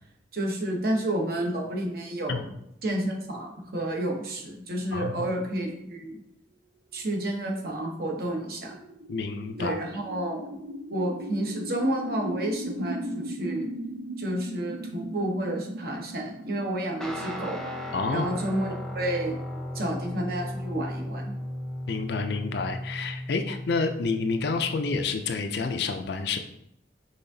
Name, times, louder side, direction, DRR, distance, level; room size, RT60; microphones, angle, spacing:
voice 1, 0.3-2.5 2.8-6.2 6.9-8.7 9.6-10.5 10.9-13.7 14.2-17.8 18.1-19.4 19.7-21.3, right 1 dB, 50° right, 1 dB, 0.9 m, -30 dB
voice 2, 4.9-5.3 9.1-9.8 17.9-18.3 21.9-26.4, left 4 dB, 60° left, 7 dB, 0.4 m, -29 dB
sound 1, 7.4-19.3, right 1 dB, 85° right, 0.6 m, -39 dB
Guitar, 17.0-25.2, left 1 dB, 5° left, 0.4 m, -36 dB
5.6 x 3.4 x 2.7 m, 0.79 s
head